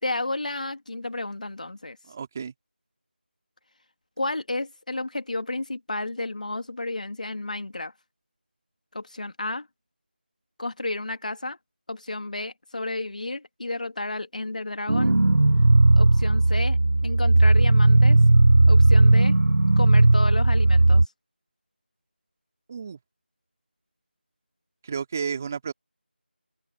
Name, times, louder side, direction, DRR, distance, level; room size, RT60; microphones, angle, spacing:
voice 1, 0.0-2.0 4.2-7.9 8.9-9.7 10.6-11.6 11.9-15.2 15.9-16.8 17.0-18.2 18.7-19.4 19.8-21.0, left 2 dB, 45° left, 2.8 m, -32 dB
voice 2, 2.1-2.5 22.7-23.0 24.8-25.7, right 6 dB, 15° right, 2.5 m, -32 dB
sound 1, 14.9-21.1, right 2 dB, 80° right, 0.5 m, -17 dB
open air
figure-of-eight pair, 175°, 6 cm